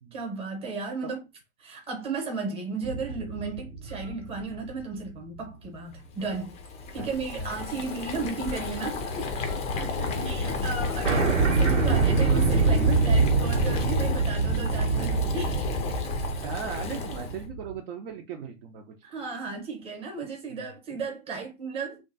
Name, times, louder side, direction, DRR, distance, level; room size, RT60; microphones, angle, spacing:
voice 1, 0.1-1.2 1.6-6.5 6.9-9.3 10.2-15.6 19.0-22.0, right 4 dB, 15° right, 1.0 m, -34 dB
sound 1, 2.8-5.4 5.9-6.0 7.5-7.9 8.1-9.6 9.8-9.9 10.1-10.2 10.5-10.6 11.0-17.8, right 4 dB, 90° right, 1.0 m, -25 dB
Boiling, 6.2-17.4, left 4 dB, 20° left, 0.5 m, -32 dB
voice 2, 7.0-7.8 9.7-10.6 11.1-11.2 11.7-11.8 14.9-15.2 16.4-18.8 20.5-20.7, right 6 dB, 50° right, 0.7 m, -39 dB
2.8 x 2.3 x 2.6 m
figure-of-eight pair, 110°, 36 cm